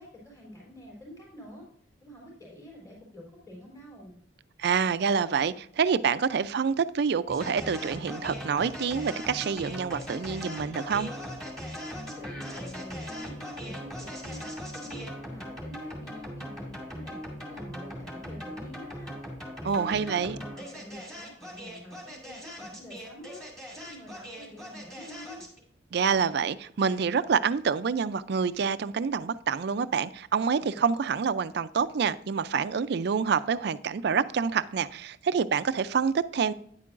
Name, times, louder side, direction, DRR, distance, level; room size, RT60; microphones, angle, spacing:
voice 1, 0.0-1.6 2.0-4.2 11.9-14.5 14.7-17.2 17.4-19.1 19.6-23.4 23.7-25.4, equal, 20° left, 3.4 m, -47 dB
voice 2, 4.6-11.1 19.6-20.4 25.9-36.5, right 6 dB, 60° right, 0.4 m, -27 dB
sound 1, 7.3-25.6, equal, ahead, 2.3 m, -39 dB
9.7 x 8.4 x 2.5 m
head